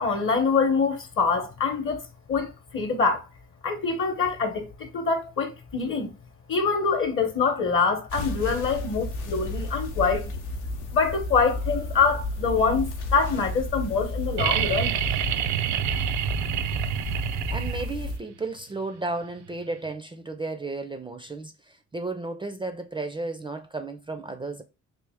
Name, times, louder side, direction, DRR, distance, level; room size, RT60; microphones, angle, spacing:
voice 1, 0.0-2.0 2.3-3.3 3.6-6.1 6.5-10.4 10.9-14.9, left 5 dB, 45° left, 0.8 m, -25 dB
sound 1, 8.1-18.2, left 2 dB, 85° left, 0.8 m, -32 dB
sound 2, 14.4-18.1 19.9-20.0, right 11 dB, 70° right, 0.5 m, -27 dB
voice 2, 17.5-24.6, right 3 dB, 15° right, 0.4 m, -33 dB
3.3 x 2.5 x 3.4 m
cardioid pair, 90°, 30 cm